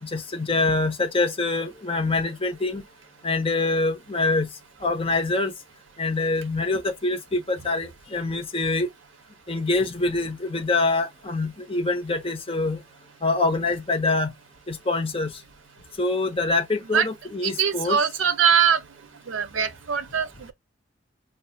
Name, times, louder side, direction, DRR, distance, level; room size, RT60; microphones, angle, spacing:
voice 1, 0.0-2.8 3.2-4.5 4.8-5.5 6.0-8.9 9.5-12.8 13.2-14.3 14.7-15.4 16.0-18.0, left 3 dB, 30° left, 0.9 m, -25 dB
voice 2, 17.4-18.8 19.3-20.5, right 8 dB, 85° right, 0.5 m, -22 dB
5.4 x 2.4 x 2.3 m
head